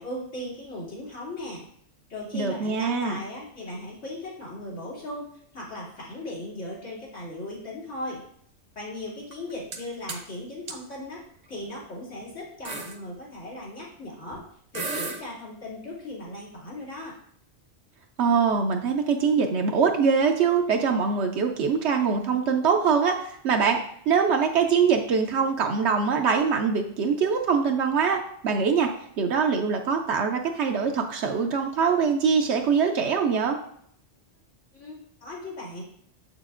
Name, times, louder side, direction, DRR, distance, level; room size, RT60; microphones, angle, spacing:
voice 1, 0.0-1.7 2.1-8.3 8.7-14.5 14.7-17.2 34.7-35.8, left 1 dB, 90° left, -6 dB, 2.8 m, -37 dB
voice 2, 2.3-3.2 18.2-23.8 24.1-28.9 29.2-33.6, right 5 dB, 70° right, 3 dB, 0.9 m, -23 dB
sound 1, 9.3-9.8 10.1-10.3 10.7-10.8 11.6-11.8 12.2-12.3 12.6-13.0 14.3-14.4 14.7-15.2, right 3 dB, 45° right, 0.7 m, -33 dB
6.8 x 6.5 x 2.5 m, 0.65 s
omnidirectional pair, 1.2 m